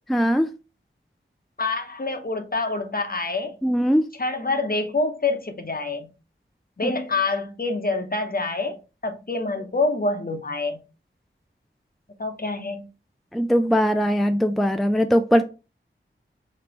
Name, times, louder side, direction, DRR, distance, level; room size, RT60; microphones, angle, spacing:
voice 1, 0.1-0.5 3.6-4.1 13.3-15.4, equal, ahead, 0.4 m, -20 dB
voice 2, 1.6-3.6 4.1-6.1 6.8-10.8 12.2-12.9, left 3 dB, 45° left, 1.0 m, -26 dB
5.1 x 3.2 x 2.9 m
wide cardioid pair, 55°, 21 cm